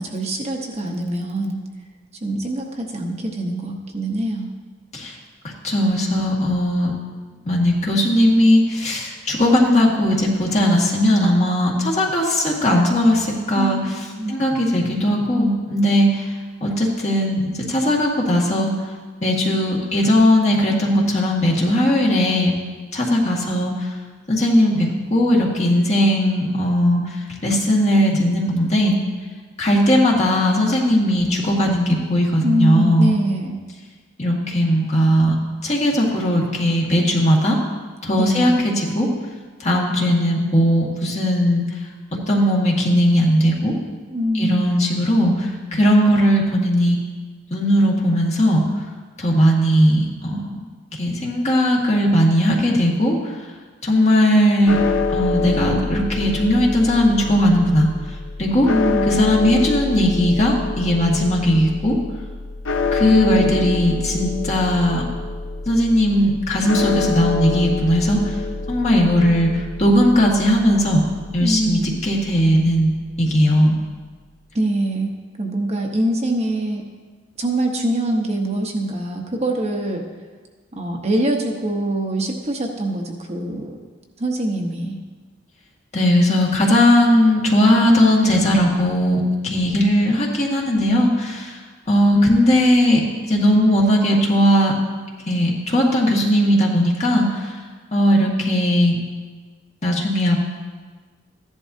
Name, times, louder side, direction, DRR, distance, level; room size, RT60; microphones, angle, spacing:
voice 1, 0.0-1.6 2.2-4.5 13.5-13.9 14.2-14.4 32.4-33.6 38.2-38.6 44.1-44.7 58.6-59.1 71.4-72.0 74.5-75.1 75.4-76.8 77.4-80.0 80.7-83.8 84.2-85.0, right 1 dB, 35° right, 1 dB, 1.0 m, -23 dB
voice 2, 5.4-6.9 7.5-13.8 14.3-16.3 16.6-18.7 19.2-22.5 22.9-23.9 24.3-27.0 27.4-29.0 29.6-33.2 34.2-35.3 35.6-37.6 38.0-39.1 39.6-41.7 42.3-43.7 44.3-47.0 47.5-48.7 49.2-50.7 50.9-53.2 53.8-54.8 55.1-57.9 58.4-58.7 59.1-62.0 62.9-65.0 65.7-68.3 68.7-71.0 71.3-73.7 85.9-91.6 91.9-94.7 95.2-97.6 97.9-99.0 99.8-100.4, equal, 35° left, -2 dB, 1.8 m, -18 dB
sound 1, 54.7-72.9, left 3 dB, 90° left, 0.6 m, -26 dB
14.5 x 11.0 x 2.8 m, 1.4 s
head